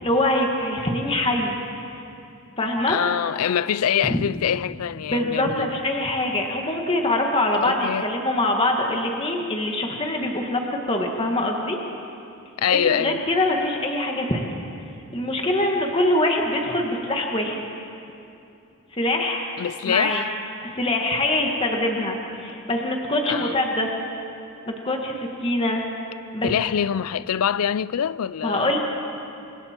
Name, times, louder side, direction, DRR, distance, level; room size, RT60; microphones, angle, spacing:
voice 1, 0.0-1.5 2.6-3.0 4.0-4.2 5.1-11.8 12.8-14.5 15.1-17.6 18.9-19.5 19.8-20.2 20.6-23.9 24.7-25.8 26.3-26.5 28.4-28.8, left 1 dB, 25° left, 1.6 m, -24 dB
voice 2, 2.9-5.7 7.6-8.1 12.6-13.2 19.6-20.3 23.3-23.6 26.4-28.7, left 8 dB, 80° left, 0.4 m, -24 dB
28.0 x 24.5 x 4.4 m
head